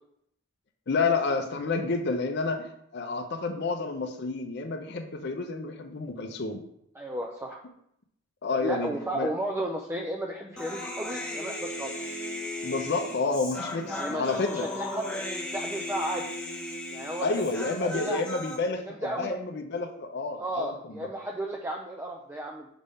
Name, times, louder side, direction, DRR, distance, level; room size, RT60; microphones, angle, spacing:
voice 1, 0.9-6.6 8.4-9.3 12.6-14.7 17.2-21.1, left 3 dB, 55° left, 4 dB, 0.6 m, -30 dB
voice 2, 7.0-7.6 8.5-12.0 13.8-15.1 15.4-16.3 16.9-18.2 19.0-19.3 20.3-22.7, right 1 dB, 10° right, 0 dB, 0.4 m, -34 dB
Human voice, 10.6-18.6, left 1 dB, 5° left, 0.8 m, -36 dB
5.1 x 3.5 x 5.4 m, 0.73 s
head